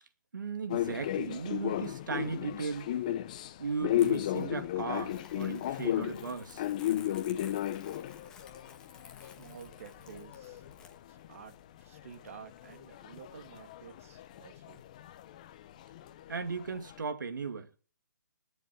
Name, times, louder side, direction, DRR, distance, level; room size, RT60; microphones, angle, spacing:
voice 1, 0.3-2.9 3.6-6.6 16.3-17.8, right 5 dB, 85° right, 2.5 m, -36 dB
sound 1, 0.7-11.5 11.8-17.0, left 12 dB, 25° left, 0.6 m, -35 dB
Crumpling crinkling, 4.0-11.0, left 5 dB, 5° left, 1.2 m, -55 dB
voice 2, 9.2-10.6 11.1-11.5 11.8-14.8, right 7 dB, 45° right, 2.5 m, -51 dB
20.0 x 7.0 x 7.6 m
hypercardioid pair, 170°, 10 cm